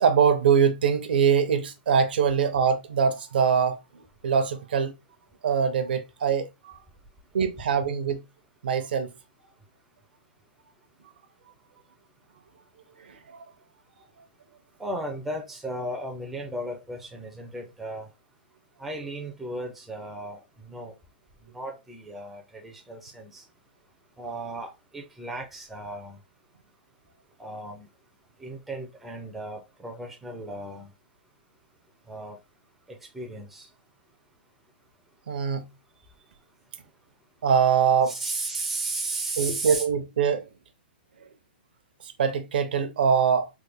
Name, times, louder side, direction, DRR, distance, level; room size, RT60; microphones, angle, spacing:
voice 1, 0.0-3.8 4.2-4.9 5.4-6.7 7.3-8.2 8.6-9.1 13.1-13.4 35.3-35.7 37.4-38.1 39.4-40.5 42.0-43.5, right 7 dB, 65° right, 0.7 m, -23 dB
voice 2, 14.8-18.1 18.8-21.0 21.5-23.4 24.2-26.2 27.4-27.9 28.4-30.9 32.1-32.4 32.9-33.7 38.1-39.9, right 2 dB, 5° right, 0.4 m, -35 dB
3.4 x 2.1 x 3.3 m
hypercardioid pair, 170°, 6 cm